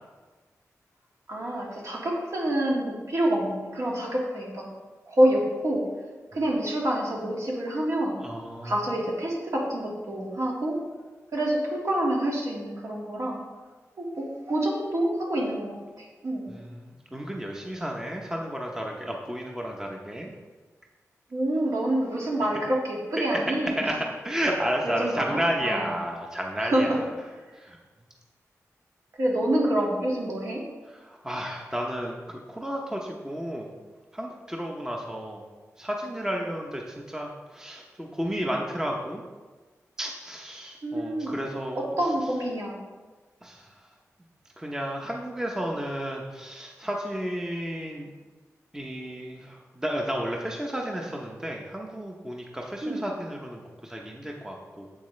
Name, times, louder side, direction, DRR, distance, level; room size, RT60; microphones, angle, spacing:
voice 1, 1.3-4.7 5.1-5.8 6.3-8.2 8.6-10.8 11.3-13.4 14.0-16.5 21.3-24.0 24.8-25.9 26.6-27.0 29.2-30.6 40.8-41.4 41.8-42.8 52.8-53.0, right 1 dB, 60° right, -3 dB, 2.0 m, -27 dB
voice 2, 8.2-8.7 16.5-20.3 23.2-23.3 23.8-24.0 24.2-27.0 27.6-27.8 30.9-33.7 34.1-35.4 35.8-39.2 40.0-41.8 43.4-43.7 44.6-48.1 48.7-54.9, equal, 10° right, 0 dB, 0.8 m, -32 dB
8.4 x 7.4 x 3.2 m, 1.3 s
wide cardioid pair, 105°, 6 cm